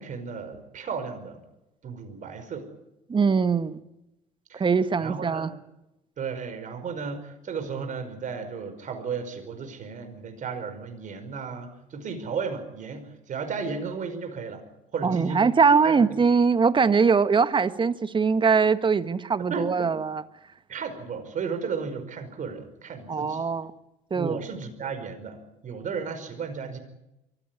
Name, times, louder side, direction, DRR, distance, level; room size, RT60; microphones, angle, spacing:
voice 1, 0.0-1.4 1.8-2.7 4.5-4.6 5.0-5.5 6.2-14.6 14.9-15.4 15.8-16.2 19.5-19.9 20.7-23.4 24.1-26.8, right 5 dB, 45° right, 8 dB, 5.1 m, -34 dB
voice 2, 3.1-3.8 4.5-5.5 15.0-20.2 23.1-23.7 24.1-24.4, right 5 dB, 30° right, 12 dB, 1.5 m, -22 dB
23.5 x 15.5 x 9.9 m, 0.91 s
hypercardioid pair, 70°, 18 cm